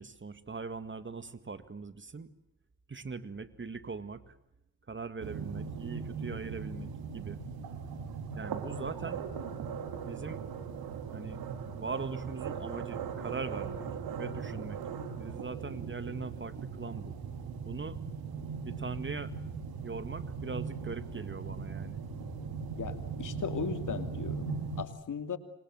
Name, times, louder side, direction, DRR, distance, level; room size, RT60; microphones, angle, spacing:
voice 1, 0.0-2.3 2.9-4.3 4.9-7.4 8.4-9.2 10.1-10.4 11.1-11.4 11.7-13.8 14.2-14.8 15.1-17.2 17.7-18.0 18.6-19.3 19.8-22.0, right 4 dB, 35° right, 12 dB, 2.1 m, -41 dB
sound 1, 5.2-24.9, right 5 dB, 85° right, 3.1 m, -39 dB
voice 2, 22.8-24.5 24.8-25.4, left 6 dB, 60° left, 9 dB, 2.9 m, -37 dB
27.5 x 25.5 x 7.9 m, 0.85 s
cardioid pair, 60°, 36 cm